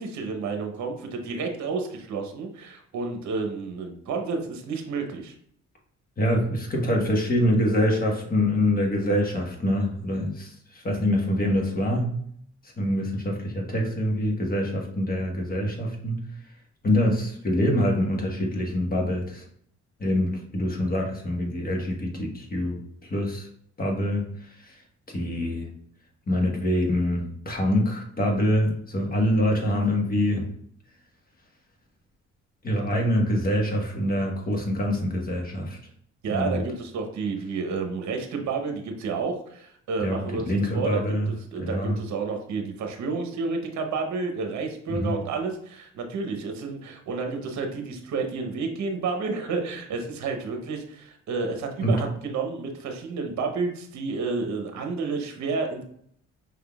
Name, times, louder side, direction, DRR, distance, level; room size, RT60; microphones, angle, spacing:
voice 1, 0.0-5.3 36.2-41.2 41.5-55.8, right 4 dB, 65° right, 4 dB, 0.9 m, -30 dB
voice 2, 6.2-12.1 12.8-16.2 16.8-19.4 20.0-23.5 23.8-24.7 25.1-25.7 26.3-30.4 32.6-35.8 36.2-36.6 40.0-41.3 41.6-42.0 44.9-45.1 51.8-51.9, left 1 dB, 30° left, 0 dB, 1.3 m, -25 dB
5.4 x 3.6 x 2.3 m, 0.65 s
cardioid pair, 90°, 30 cm